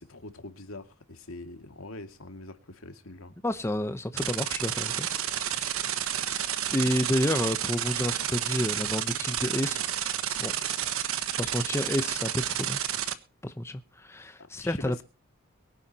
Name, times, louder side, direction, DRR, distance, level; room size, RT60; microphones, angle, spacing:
voice 1, 0.0-3.3 14.6-15.0, left 2 dB, 75° left, 2.3 m, -43 dB
voice 2, 3.4-5.8 6.7-9.8 10.4-10.5 11.4-12.8 13.4-15.0, left 1 dB, 10° left, 0.8 m, -30 dB
sound 1, 4.2-13.1, right 10 dB, 75° right, 1.3 m, -30 dB
23.0 x 10.0 x 2.9 m
head